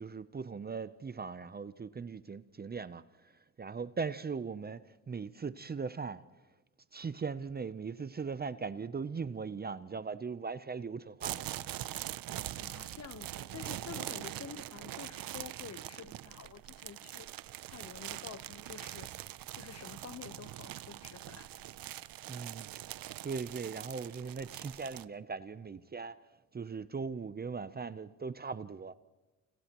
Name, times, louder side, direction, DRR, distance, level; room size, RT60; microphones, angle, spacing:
voice 1, 0.0-6.2 6.9-11.4 22.3-22.9 23.2-26.2 26.5-28.9, right 5 dB, 25° right, 0.7 m, -39 dB
sound 1, 11.2-25.0, right 13 dB, 65° right, 0.7 m, -43 dB
voice 2, 12.6-17.3 17.7-19.1 19.5-21.5, left 7 dB, 45° left, 1.1 m, -49 dB
30.0 x 29.0 x 3.0 m
cardioid pair, 80°, 37 cm